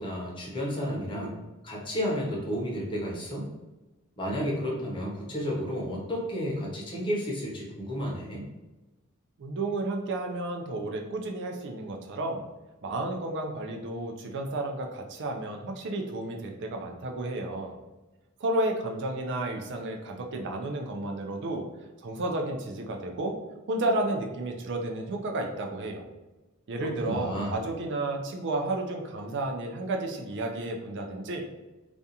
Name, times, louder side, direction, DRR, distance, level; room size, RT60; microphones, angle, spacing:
voice 1, 0.0-1.3 1.6-3.5 4.2-8.5 26.8-27.6, equal, 25° left, -3 dB, 0.7 m, -32 dB
voice 2, 9.4-12.4 12.8-17.8 18.4-21.7 22.0-23.3 23.7-26.1 26.7-31.4, right 2 dB, 55° right, 2 dB, 0.4 m, -32 dB
2.4 x 2.3 x 2.7 m, 1.1 s
head